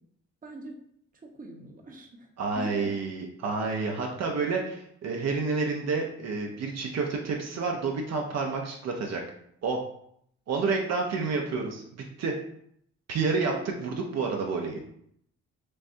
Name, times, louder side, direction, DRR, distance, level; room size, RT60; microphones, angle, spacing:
voice 1, 0.4-0.7 1.2-2.3 2.5-2.9 10.6-11.0 13.5-13.7, right 2 dB, 30° right, 1 dB, 0.9 m, -42 dB
voice 2, 2.4-9.2 9.6-9.8 10.5-12.3 13.1-14.8, right 4 dB, 60° right, 1 dB, 0.7 m, -29 dB
6.4 x 2.2 x 2.7 m, 0.70 s
cardioid pair, 90°, 30 cm